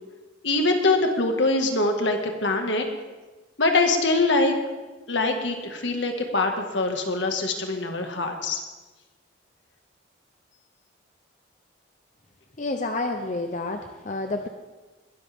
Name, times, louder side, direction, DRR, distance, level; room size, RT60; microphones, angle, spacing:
voice 1, 0.4-2.9 3.6-4.5 5.1-8.6, left 2 dB, 75° left, 4 dB, 1.9 m, -23 dB
voice 2, 12.6-14.5, left 2 dB, 40° left, 5 dB, 0.7 m, -29 dB
21.0 x 12.5 x 3.6 m, 1.2 s
head